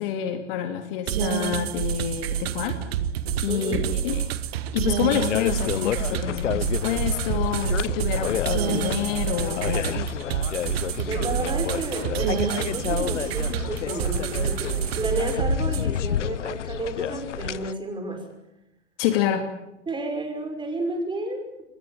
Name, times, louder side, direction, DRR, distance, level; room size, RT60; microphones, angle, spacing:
voice 1, 0.0-2.8 3.4-4.3 4.7-10.1 19.0-19.5, left 9 dB, 50° left, 7 dB, 2.8 m, -28 dB
sound 1, 1.1-15.9, right 10 dB, 55° right, 1.6 m, -28 dB
voice 2, 3.5-3.8 10.9-18.3 19.9-21.6, right 2 dB, 15° right, 5 dB, 5.9 m, -31 dB
sound 2, 5.1-17.7, left 10 dB, 80° left, 0.8 m, -30 dB
24.5 x 19.0 x 8.8 m, 0.88 s
hypercardioid pair, 105°, 36 cm